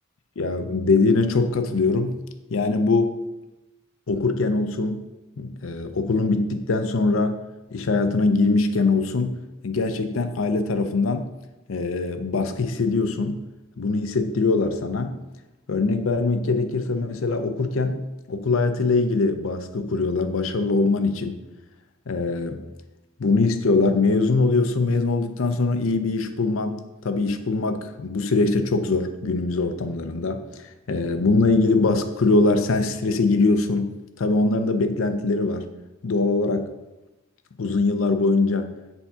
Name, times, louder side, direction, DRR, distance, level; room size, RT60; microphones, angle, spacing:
voice 1, 0.4-2.2 2.5-3.1 4.1-5.0 5.4-7.4 7.7-9.4 9.6-11.3 11.7-13.4 13.8-15.1 15.7-18.0 18.3-21.4 22.1-22.6 23.2-35.7 36.0-36.7 37.6-38.7, left 3 dB, 80° left, 7 dB, 0.6 m, -22 dB
7.1 x 3.5 x 5.6 m, 1.0 s
head